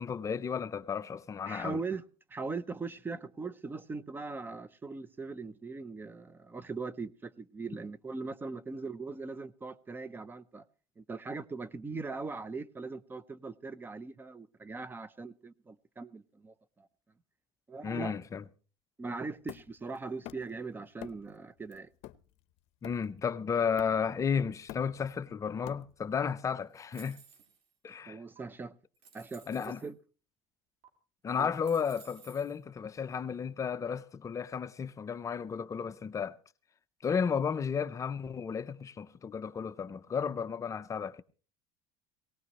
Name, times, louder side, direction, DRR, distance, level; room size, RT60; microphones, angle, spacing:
voice 1, 0.0-1.8 17.8-18.4 22.8-27.2 27.8-28.2 29.5-29.8 31.2-36.4 37.0-41.2, left 6 dB, 25° left, 0.6 m, -33 dB
voice 2, 1.5-2.0 2.3-10.6 11.0-16.9 17.7-18.2 19.0-21.9 28.1-28.7 29.1-30.0 31.4-31.5, right 4 dB, 15° right, 0.7 m, -40 dB
Hammer, 19.5-20.6 21.0-21.3 21.7-23.3 23.8-24.2 24.5-26.2, left 14 dB, 60° left, 0.8 m, -48 dB
sound 1, 26.7-27.7 28.4-28.5 28.9-29.9 30.8-30.9 31.3-32.6, right 6 dB, 60° right, 4.2 m, -57 dB
18.5 x 18.5 x 3.0 m
supercardioid pair, 125°, 12 cm